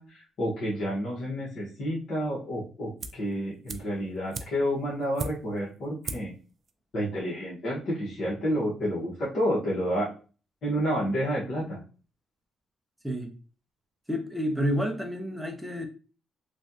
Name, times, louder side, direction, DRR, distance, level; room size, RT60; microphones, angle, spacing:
voice 1, 0.0-6.3 6.9-10.1 10.6-11.8, equal, 60° left, 1.2 m, -30 dB
sound 1, 3.0-3.3 3.7-5.7 6.0-6.4 6.7-6.8, right 4 dB, 50° right, 0.3 m, -38 dB
voice 2, 14.1-15.9, equal, 5° right, 0.7 m, -29 dB
3.2 x 2.3 x 2.7 m
cardioid pair, 90°, 0 cm